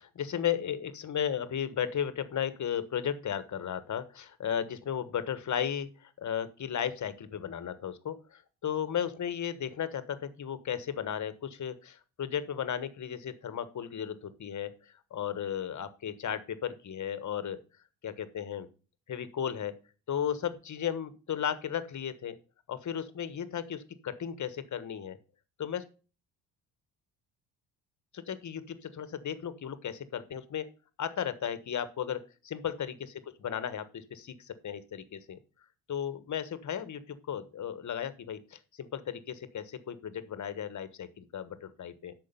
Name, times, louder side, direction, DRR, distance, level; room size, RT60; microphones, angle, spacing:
voice 1, 0.0-14.7 15.1-17.6 18.0-18.7 19.1-19.7 20.1-22.4 22.7-25.2 25.6-25.8 28.1-30.7 31.0-35.4 35.9-42.1, left 9 dB, 45° left, 13 dB, 1.3 m, -35 dB
8.5 x 6.4 x 5.5 m, 0.36 s
supercardioid pair, 70°, 40 cm